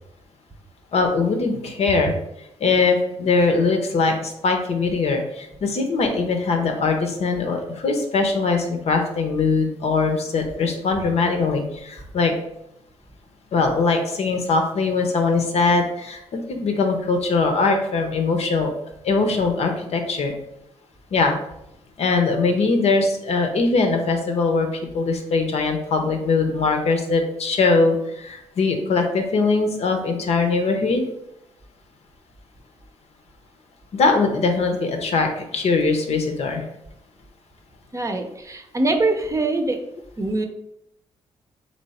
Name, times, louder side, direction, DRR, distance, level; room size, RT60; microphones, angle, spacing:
voice 1, 0.9-2.1 2.6-12.4 13.5-18.7 19.0-20.3 21.1-21.4 22.0-31.0 33.9-36.7, left 4 dB, 65° left, 4 dB, 0.8 m, -21 dB
voice 2, 37.9-39.8 40.2-40.5, right 2 dB, 25° right, 5 dB, 0.7 m, -23 dB
3.3 x 3.0 x 4.2 m, 0.83 s
supercardioid pair, 60°, 12 cm